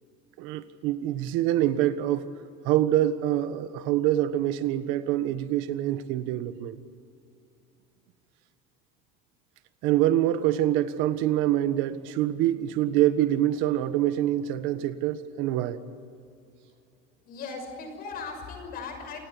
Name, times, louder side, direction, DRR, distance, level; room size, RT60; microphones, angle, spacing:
voice 1, 0.4-2.2 2.6-6.8 9.8-15.8, right 13 dB, 80° right, 1.4 m, -25 dB
voice 2, 17.2-19.2, left 4 dB, 50° left, 6.2 m, -38 dB
29.0 x 17.5 x 8.4 m
cardioid pair, 170°, 20 cm